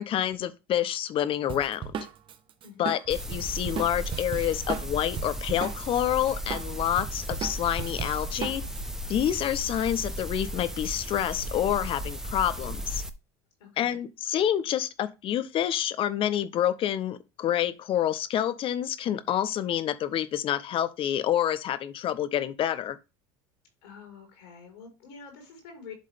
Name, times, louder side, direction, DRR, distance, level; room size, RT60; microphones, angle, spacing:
voice 1, 0.0-1.8 2.8-8.6 9.1-13.0 13.8-23.0, left 11 dB, 45° left, 0.8 m, -28 dB
Drum kit, 1.5-6.0 6.3-8.8, right 8 dB, 45° right, 1.0 m, -36 dB
sound 1, 3.1-13.1, equal, 5° right, 0.8 m, -35 dB
voice 2, 13.6-14.0 23.8-25.9, left 6 dB, 80° left, 4.3 m, -47 dB
11.0 x 3.8 x 3.4 m
supercardioid pair, 90°, 12 cm